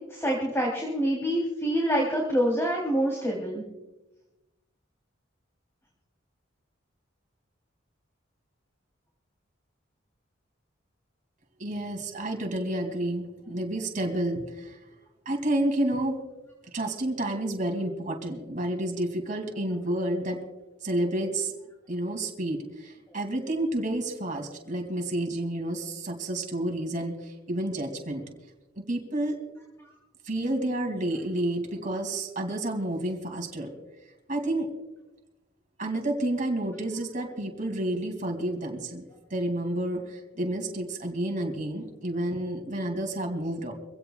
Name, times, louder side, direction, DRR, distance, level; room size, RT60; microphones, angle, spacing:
voice 1, 0.1-3.6, equal, 15° left, -3 dB, 3.4 m, -26 dB
voice 2, 11.6-14.8 15.2-16.2 16.7-20.4 20.8-21.5 21.9-28.2 28.8-29.4 30.2-33.7 34.3-34.7 35.8-39.0 39.3-43.7, right 1 dB, 40° right, 2 dB, 2.8 m, -30 dB
25.0 x 16.5 x 2.4 m, 1.0 s
head